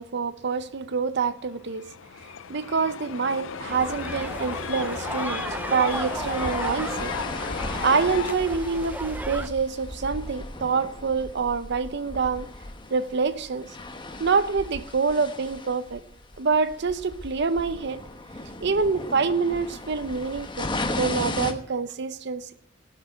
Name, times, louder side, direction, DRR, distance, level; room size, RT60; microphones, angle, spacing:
voice 1, 0.0-1.8 2.5-5.4 5.7-7.1 7.8-12.5 12.9-13.7 14.2-16.0 16.4-18.0 18.6-22.5, right 5 dB, 60° right, 0.6 m, -26 dB
sound 1, 1.5-8.3, left 6 dB, 75° left, 0.5 m, -35 dB
sound 2, 3.7-9.5, right 2 dB, 10° right, 0.6 m, -35 dB
sound 3, 5.9-21.5, left 2 dB, 25° left, 1.1 m, -36 dB
16.5 x 6.4 x 9.2 m
head